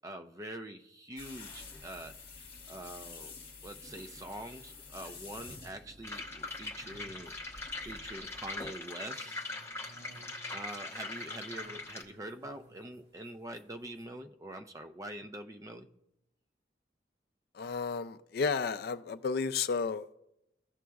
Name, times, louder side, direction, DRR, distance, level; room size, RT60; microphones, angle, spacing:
voice 1, 0.0-2.2 2.7-3.3 3.6-9.5 10.5-15.9, right 1 dB, 20° right, 0.4 m, -45 dB
sound 1, 1.2-8.8, left 4 dB, 30° left, 1.6 m, -50 dB
sound 2, 5.2-14.2, right 1 dB, 70° right, 1.6 m, -61 dB
sound 3, 6.0-12.0, left 2 dB, 15° left, 0.9 m, -41 dB
voice 2, 17.5-20.2, left 5 dB, 60° left, 0.4 m, -32 dB
15.5 x 6.2 x 2.3 m
head